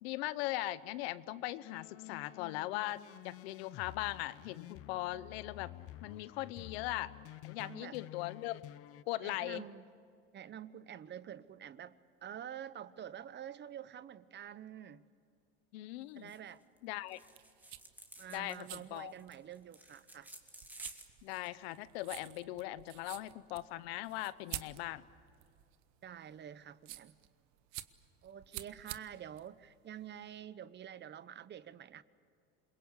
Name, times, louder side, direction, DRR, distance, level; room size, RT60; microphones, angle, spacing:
voice 1, 0.0-5.7 6.0-7.1 7.4-8.6 9.1-9.6 15.7-16.3 16.8-17.2 18.3-19.1 21.2-25.1, left 16 dB, 85° left, 16 dB, 0.9 m, -39 dB
sound 1, 1.6-9.0, left 16 dB, 50° left, 0.6 m, -51 dB
voice 2, 7.6-8.0 9.2-9.8 10.3-15.0 16.1-16.6 18.2-20.3 26.0-27.1 28.2-32.0, right 10 dB, 35° right, 16 dB, 0.9 m, -48 dB
sound 2, 16.3-16.5 16.8-16.9 17.1-21.5, right 1 dB, 5° right, 2.7 m, -53 dB
sound 3, 17.2-30.4, right 15 dB, 65° right, 1.1 m, -50 dB
27.5 x 22.0 x 8.4 m, 2.3 s
supercardioid pair, 105°, 30 cm